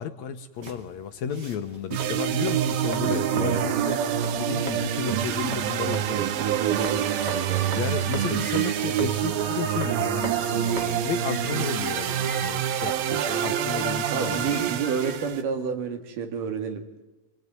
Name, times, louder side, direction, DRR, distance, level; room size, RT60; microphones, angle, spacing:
voice 1, 0.0-4.0 4.4-6.3 7.8-14.7, left 8 dB, 65° left, 9 dB, 1.9 m, -33 dB
sound 1, 0.5-12.1, right 1 dB, 30° right, 2.9 m, -42 dB
sound 2, 1.9-15.4, right 10 dB, 85° right, 3.1 m, -26 dB
voice 2, 3.0-3.7 6.1-7.9 14.1-17.0, right 7 dB, 65° right, 5 dB, 3.8 m, -30 dB
sound 3, 8.0-15.5, left 1 dB, ahead, 2.2 m, -45 dB
25.0 x 21.5 x 9.4 m, 1.0 s
omnidirectional pair, 4.1 m